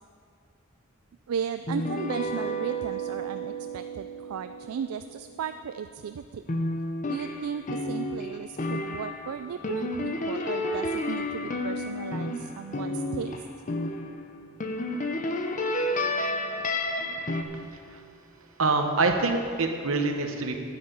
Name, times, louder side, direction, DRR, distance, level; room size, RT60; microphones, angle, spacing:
voice 1, 1.3-6.5 7.1-13.4, right 7 dB, 85° right, 10 dB, 0.3 m, -36 dB
sound 1, 1.7-6.0 6.5-14.2 14.6-17.4, left 1 dB, 35° left, 0.7 m, -31 dB
voice 2, 18.6-20.6, right 3 dB, 70° right, 5 dB, 1.0 m, -26 dB
10.5 x 5.8 x 8.5 m, 2.3 s
head